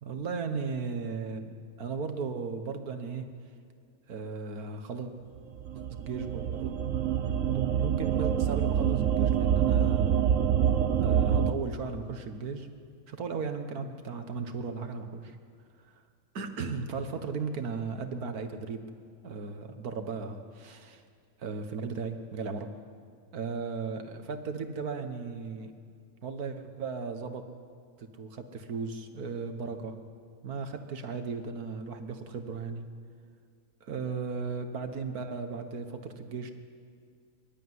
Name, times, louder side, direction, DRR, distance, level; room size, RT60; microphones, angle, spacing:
voice 1, 0.0-3.3 4.1-5.1 5.7-6.8 7.5-10.2 11.0-12.7 13.1-15.4 16.4-18.8 19.2-21.0 21.4-22.7 23.3-25.7 26.2-27.4 28.0-30.0 30.4-32.9 33.8-36.5, right 5 dB, 80° right, 7 dB, 1.8 m, -36 dB
sound 1, 5.6-11.5, right 9 dB, 65° right, 1.1 m, -26 dB
23.5 x 12.5 x 9.5 m, 2.2 s
omnidirectional pair, 1.6 m